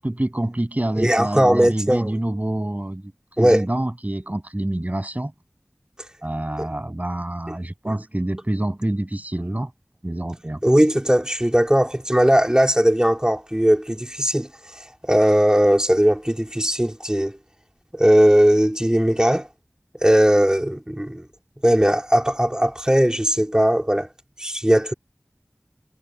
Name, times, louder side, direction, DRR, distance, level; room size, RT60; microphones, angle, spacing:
voice 1, 0.0-3.1 3.4-5.3 6.2-9.7 10.0-10.6, right 1 dB, 35° right, 7.8 m, -26 dB
voice 2, 1.0-2.1 3.4-3.6 6.6-6.7 10.6-17.4 17.9-19.5 20.0-21.2 21.6-24.1 24.4-24.9, equal, 15° right, 2.7 m, -18 dB
wide cardioid pair, 50°, 5 cm